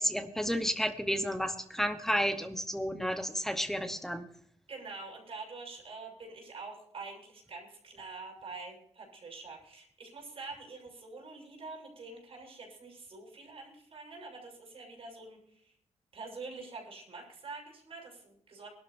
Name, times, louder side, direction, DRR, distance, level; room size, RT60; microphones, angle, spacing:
voice 1, 0.0-4.2, equal, 5° left, 7 dB, 1.1 m, -31 dB
voice 2, 4.7-15.7 16.1-18.7, right 3 dB, 55° right, -1 dB, 6.8 m, -46 dB
23.5 x 12.5 x 2.7 m, 0.69 s
wide cardioid pair, 155°, 12 cm